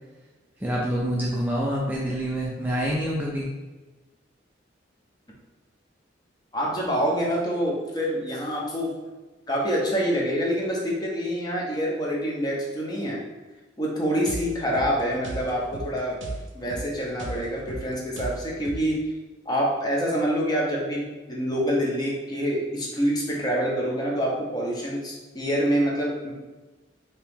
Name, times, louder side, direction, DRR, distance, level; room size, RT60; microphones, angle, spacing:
voice 1, 0.6-3.5, equal, 10° right, -5 dB, 0.3 m, -26 dB
voice 2, 6.5-8.9 9.5-13.2 13.8-16.2 16.5-19.1 19.5-26.3, equal, 20° left, -3 dB, 0.7 m, -26 dB
sound 1, 14.3-19.0, right 2 dB, 75° right, 0.6 m, -37 dB
2.9 x 2.9 x 3.4 m, 1.2 s
head